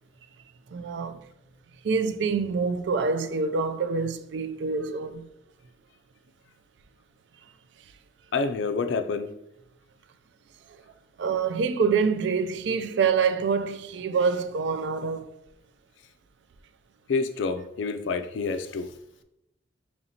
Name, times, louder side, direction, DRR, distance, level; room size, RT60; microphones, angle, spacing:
voice 1, 0.7-1.2 1.8-5.3 11.2-15.3, right 5 dB, 65° right, 0.3 m, -26 dB
voice 2, 8.3-9.3 17.1-18.9, left 4 dB, 70° left, 0.4 m, -28 dB
4.2 x 2.9 x 2.8 m
head